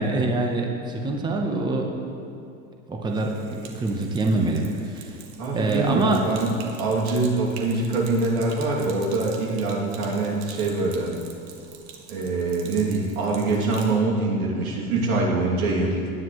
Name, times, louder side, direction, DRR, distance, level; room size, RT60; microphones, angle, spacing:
voice 1, 0.0-2.0 2.9-4.6 4.9-5.0 5.5-6.2, right 2 dB, 10° right, 1 dB, 0.9 m, -25 dB
Sink (filling or washing), 3.0-14.0, right 6 dB, 70° right, 1.7 m, -44 dB
voice 2, 5.4-11.1 12.1-16.1, right 3 dB, 90° right, -3 dB, 2.7 m, -24 dB
17.5 x 10.0 x 3.2 m, 2.6 s
supercardioid pair, 135°, 41 cm